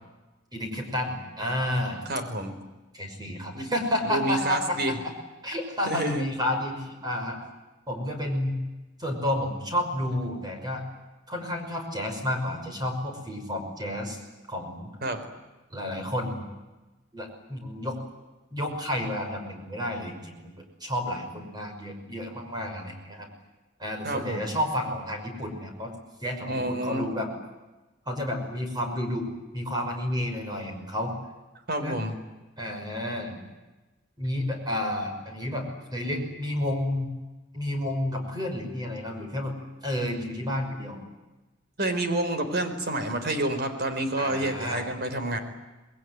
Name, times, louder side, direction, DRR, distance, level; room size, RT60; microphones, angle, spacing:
voice 1, 0.5-2.0 2.9-4.8 5.4-7.5 7.9-8.6 9.0-10.8 11.3-14.2 14.5-14.9 15.7-16.5 17.1-18.0 18.5-20.5 20.8-23.3 23.8-25.9 26.2-27.3 28.1-29.3 29.5-31.1 31.8-32.0 32.6-33.4 34.2-37.1 37.5-39.6 39.8-41.0 44.2-44.9, left 1 dB, 20° right, 3 dB, 5.8 m, -31 dB
voice 2, 2.1-2.6 3.5-3.7 4.0-4.9 5.9-6.2 15.0-15.2 24.0-24.5 26.5-27.0 31.7-32.2 41.8-45.4, right 1 dB, 55° right, 8 dB, 4.2 m, -28 dB
27.5 x 21.5 x 9.5 m, 1.1 s
head